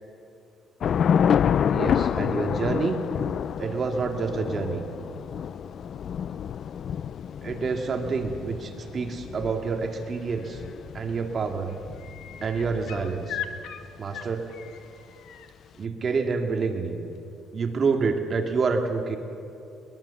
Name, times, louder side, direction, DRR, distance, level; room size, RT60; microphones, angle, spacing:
Thunder / Rain, 0.8-13.3, left 8 dB, 50° left, 0.4 m, -28 dB
voice 1, 1.7-3.0 3.6-4.9 7.4-10.6 10.9-11.7 12.4-13.4 14.0-14.4 15.8-17.0 17.5-19.2, right 4 dB, 40° right, 4 dB, 2.1 m, -27 dB
sound 1, 10.8-11.1 11.4-15.5 17.1-17.2, left 10 dB, 90° left, 1.8 m, -39 dB
22.5 x 22.0 x 7.0 m, 2.9 s
cardioid pair, 135°, 0 cm